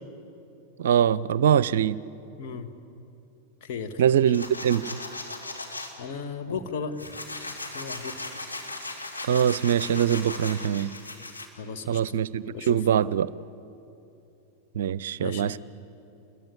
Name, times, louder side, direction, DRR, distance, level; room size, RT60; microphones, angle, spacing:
voice 1, 0.8-2.0 4.0-4.9 9.3-10.9 11.9-13.3 14.8-15.6, right 9 dB, 60° right, 20 dB, 0.5 m, -23 dB
voice 2, 2.4-2.7 3.6-4.2 6.0-7.0 7.7-8.3 11.6-12.0 12.5-12.8 15.2-15.6, left 5 dB, 50° left, 5 dB, 1.9 m, -35 dB
sound 1, 4.3-5.9 6.5-11.5, left 2 dB, 85° left, 3.2 m, -37 dB
28.5 x 22.0 x 8.6 m, 2.8 s
figure-of-eight pair, 90°, 0 cm